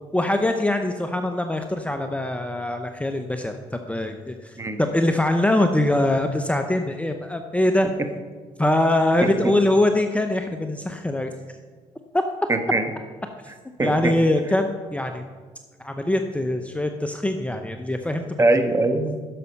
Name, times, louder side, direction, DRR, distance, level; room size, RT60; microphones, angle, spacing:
voice 1, 0.1-3.6 3.9-7.9 8.6-11.3 12.1-12.2 13.8-15.2 15.8-18.2, left 1 dB, 10° left, 6 dB, 0.8 m, -23 dB
voice 2, 9.2-9.5 12.5-12.9 13.8-14.1 18.4-19.2, right 2 dB, 20° right, 6 dB, 1.3 m, -22 dB
11.0 x 6.8 x 5.3 m, 1.5 s
supercardioid pair, 65°, 14 cm